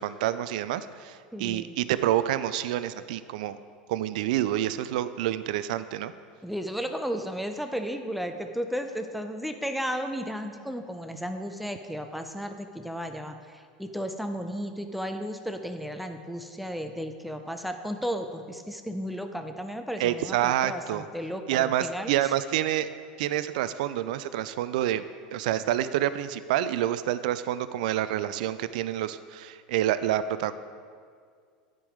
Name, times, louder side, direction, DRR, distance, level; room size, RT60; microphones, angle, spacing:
voice 1, 0.0-3.6 3.9-6.1 20.0-21.0 21.5-22.9 23.2-25.0 25.3-30.5, right 12 dB, 70° right, 14 dB, 0.4 m, -28 dB
voice 2, 1.3-1.7 6.4-22.1, equal, ahead, 6 dB, 0.6 m, -34 dB
9.8 x 5.3 x 5.0 m, 2.1 s
hypercardioid pair, 90°, 4 cm